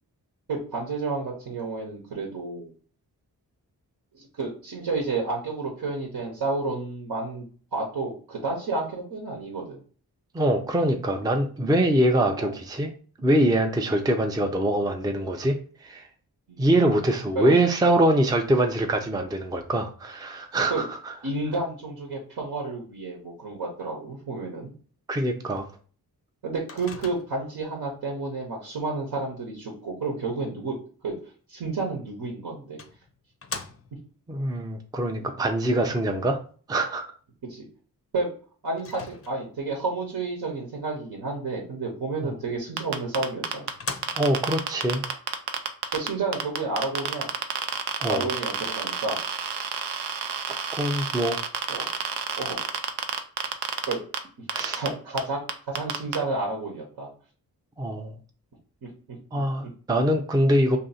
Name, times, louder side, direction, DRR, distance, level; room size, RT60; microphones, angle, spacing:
voice 1, 0.5-2.7 4.1-7.4 7.7-9.8 12.4-12.5 16.5-16.6 17.3-17.5 20.7-20.8 21.2-24.7 26.4-30.8 31.0-31.1 31.5-32.8 36.1-36.2 37.5-37.6 38.1-38.3 38.6-43.7 45.9-47.3 48.1-49.2 51.7-51.9 52.4-52.6 53.9-54.0 54.7-57.1, right 3 dB, 70° right, -1 dB, 1.0 m, -30 dB
voice 2, 10.3-12.9 13.2-16.1 16.6-21.1 25.1-25.7 34.3-36.4 36.7-37.0 42.2-42.3 44.1-45.0 48.0-48.3 50.5-51.4 54.5-54.8 57.8-58.1 59.3-60.8, right 1 dB, 10° right, 4 dB, 0.5 m, -24 dB
Microwave oven, 26.7-27.6 31.9-32.0 32.8-34.2 38.8-39.7 42.8-42.9 43.3-43.4 43.7-44.5, left 5 dB, 35° left, 0.5 m, -40 dB
sound 1, 42.8-46.1 46.3-54.2 54.5-54.9 55.2-55.3 55.5-56.2, right 7 dB, 85° right, 0.6 m, -29 dB
2.7 x 2.6 x 4.0 m, 0.41 s
cardioid pair, 65°, 39 cm